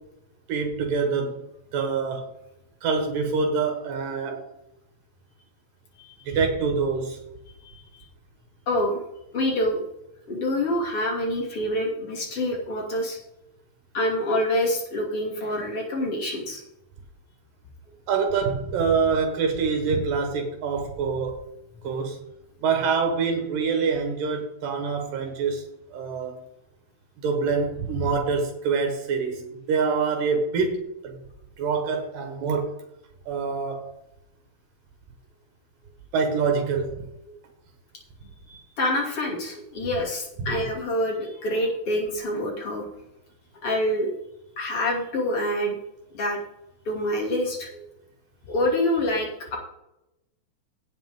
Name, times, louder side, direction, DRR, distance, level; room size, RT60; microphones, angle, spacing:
voice 1, 0.5-1.4 1.7-2.3 2.8-4.5 6.2-7.2 18.1-21.4 21.8-22.2 22.6-25.6 25.9-26.4 27.2-31.1 31.6-32.8 33.3-33.8 36.1-37.0 40.4-40.5, right 5 dB, 80° right, 3 dB, 3.0 m, -25 dB
voice 2, 8.7-9.0 9.3-9.8 10.3-13.2 13.9-16.6 38.5-42.8 43.6-44.1 44.6-45.8 46.1-46.4 46.8-47.8 48.5-49.6, left 1 dB, 40° left, -2 dB, 3.4 m, -26 dB
17.0 x 6.8 x 3.7 m, 0.88 s
omnidirectional pair, 3.9 m